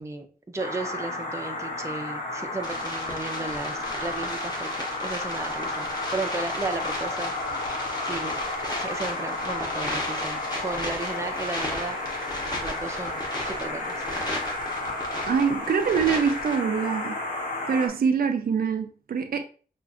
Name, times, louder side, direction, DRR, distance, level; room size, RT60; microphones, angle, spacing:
voice 1, 0.0-4.7 5.0-8.4 8.8-12.0 12.6-14.1, right 3 dB, 20° right, 0.5 m, -35 dB
sound 1, 0.6-17.9, left 2 dB, 50° left, 1.3 m, -32 dB
sound 2, 2.6-16.6, left 1 dB, 25° left, 1.1 m, -36 dB
voice 2, 15.3-17.2 17.7-19.4, right 6 dB, 75° right, 0.5 m, -24 dB
5.9 x 2.5 x 2.4 m
wide cardioid pair, 125°, 16 cm